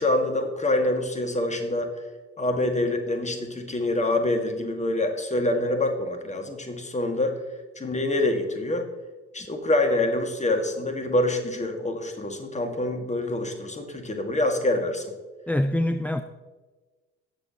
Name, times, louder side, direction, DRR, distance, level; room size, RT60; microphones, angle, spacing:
voice 1, 0.0-1.9 2.4-7.4 7.8-8.9 9.3-15.1, left 1 dB, 20° left, 5 dB, 1.7 m, -26 dB
voice 2, 15.5-16.2, left 1 dB, 5° left, 10 dB, 0.4 m, -24 dB
18.0 x 6.9 x 2.9 m, 1.3 s
figure-of-eight pair, 45°, 32 cm